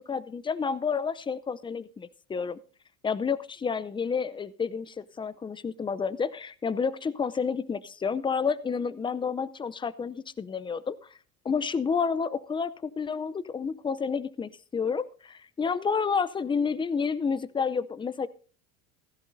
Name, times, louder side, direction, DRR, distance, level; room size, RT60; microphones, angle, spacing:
voice 1, 0.0-2.6 3.0-11.0 11.4-18.3, left 5 dB, 10° left, 15 dB, 0.5 m, -30 dB
16.0 x 14.0 x 2.6 m, 0.41 s
hypercardioid pair, 95°, 43 cm